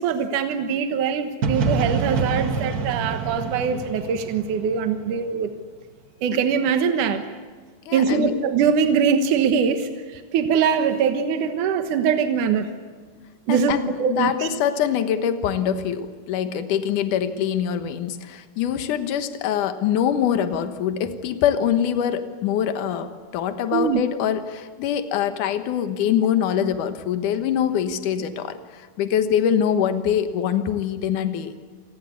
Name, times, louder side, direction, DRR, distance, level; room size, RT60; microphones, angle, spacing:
voice 1, 0.0-5.5 6.2-7.2 7.9-12.7 13.5-13.7 14.0-14.5 23.7-24.0, right 6 dB, 75° right, 7 dB, 2.8 m, -22 dB
sound 1, 1.4-5.3, right 4 dB, 55° right, 1.0 m, -26 dB
voice 2, 7.9-8.3 13.5-31.5, left 9 dB, 75° left, 8 dB, 2.8 m, -24 dB
27.0 x 20.0 x 8.4 m, 1.5 s
omnidirectional pair, 3.7 m